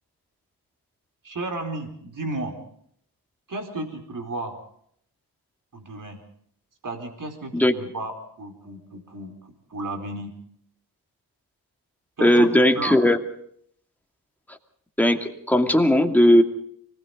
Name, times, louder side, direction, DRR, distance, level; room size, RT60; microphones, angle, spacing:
voice 1, 1.2-2.6 3.5-4.6 5.7-6.2 6.8-10.3 12.2-13.0, right 2 dB, 55° right, 4 dB, 4.5 m, -33 dB
voice 2, 12.2-13.2 15.0-16.4, equal, 5° left, 4 dB, 2.5 m, -17 dB
25.0 x 19.5 x 5.3 m, 0.66 s
cardioid pair, 75°, 39 cm